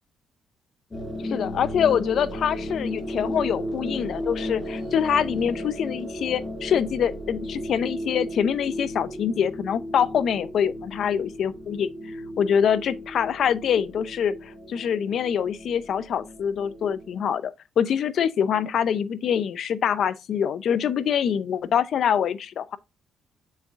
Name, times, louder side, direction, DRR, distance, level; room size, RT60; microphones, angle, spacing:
sound 1, 0.9-17.3, left 1 dB, 30° left, 4.6 m, -35 dB
voice 1, 1.2-22.8, left 8 dB, 65° left, 0.7 m, -25 dB
8.3 x 6.4 x 2.5 m
cardioid pair, 90°, 0 cm